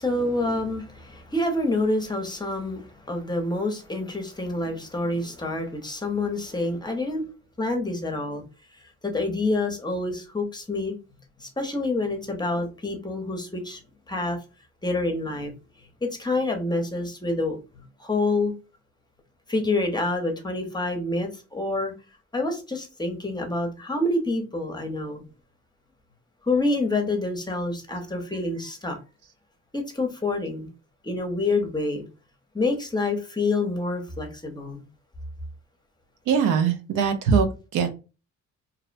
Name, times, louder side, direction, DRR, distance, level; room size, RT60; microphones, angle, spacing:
voice 1, 0.0-7.2 7.6-8.4 9.1-10.9 11.4-13.8 14.1-14.4 14.8-15.5 16.0-17.6 18.0-18.5 19.5-21.9 22.3-25.2 26.5-29.0 29.7-30.7 31.0-32.1 32.5-34.8, left 2 dB, 15° left, 0.7 m, -27 dB
voice 2, 36.3-37.5 37.7-37.9, right 6 dB, 90° right, 0.6 m, -21 dB
2.6 x 2.0 x 2.5 m
cardioid pair, 90°, 30 cm